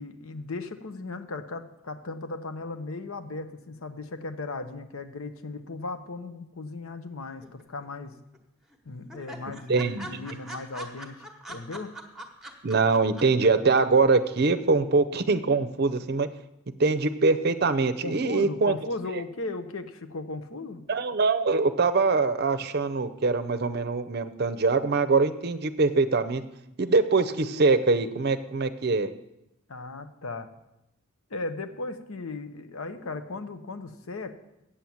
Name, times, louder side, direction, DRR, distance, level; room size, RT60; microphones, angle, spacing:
voice 1, 0.0-8.2 8.8-11.9 18.0-20.8 29.7-30.5 31.3-34.3, left 3 dB, 90° left, 9 dB, 0.9 m, -37 dB
sound 1, 7.4-8.1 8.3-8.4 8.7-8.8 9.1-13.5 13.8-13.9, right 1 dB, 5° right, 1.1 m, -41 dB
voice 2, 9.7-10.3 12.6-16.3 16.8-18.8 20.9-26.4 26.8-29.1, right 4 dB, 50° right, 11 dB, 0.6 m, -23 dB
8.6 x 7.7 x 7.1 m, 0.89 s
head